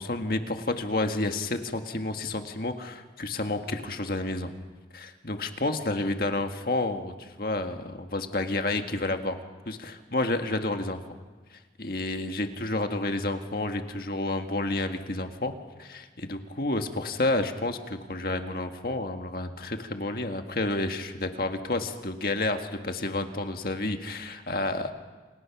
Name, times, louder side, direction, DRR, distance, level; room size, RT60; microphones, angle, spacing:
voice 1, 0.0-4.5 4.9-9.4 9.7-11.0 11.5-15.5 15.8-24.9, left 2 dB, 55° left, 5 dB, 1.8 m, -30 dB
28.5 x 27.0 x 6.1 m, 1.4 s
head